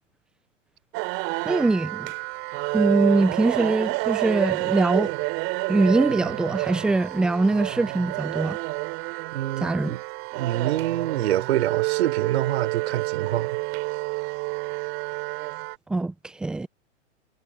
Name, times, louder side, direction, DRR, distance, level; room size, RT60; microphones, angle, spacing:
sound 1, 0.9-15.7, right 27 dB, 35° right, 4.3 m, -29 dB
voice 1, 1.4-2.1 2.7-5.1 5.7-8.6 9.6-9.9 15.9-16.7, right 2 dB, ahead, 0.4 m, -23 dB
voice 2, 9.3-10.0 10.3-13.6, right 13 dB, 60° right, 6.4 m, -26 dB
hypercardioid pair, 120°, 37 cm